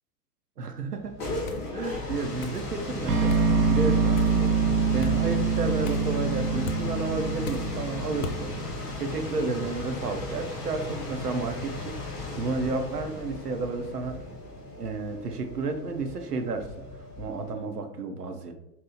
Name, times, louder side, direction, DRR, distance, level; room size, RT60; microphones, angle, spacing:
voice 1, 0.6-1.1 1.7-4.5 4.9-8.6 9.0-12.0 12.4-14.2 14.8-16.7 17.2-18.5, right 3 dB, 85° right, 6 dB, 0.6 m, -31 dB
sound 1, 0.9-17.6, left 2 dB, 25° left, 0.7 m, -36 dB
sound 2, 1.5-1.7 2.4-2.6 3.3-3.5 4.2-4.4 5.0-5.2 5.8-6.1 6.6-6.8 7.4-7.7 8.2-8.4, left 3 dB, 65° left, 0.5 m, -37 dB
sound 3, 3.1-9.1, right 4 dB, 35° right, 0.5 m, -25 dB
2.8 x 2.0 x 3.7 m, 0.88 s
figure-of-eight pair, 100°, 46 cm